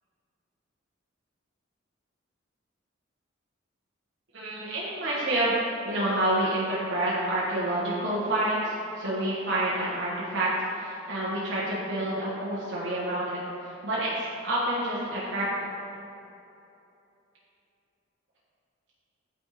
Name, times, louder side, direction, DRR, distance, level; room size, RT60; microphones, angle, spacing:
voice 1, 4.3-15.7, right 1 dB, 65° right, -8 dB, 1.1 m, -28 dB
9.2 x 4.0 x 4.1 m, 2.8 s
head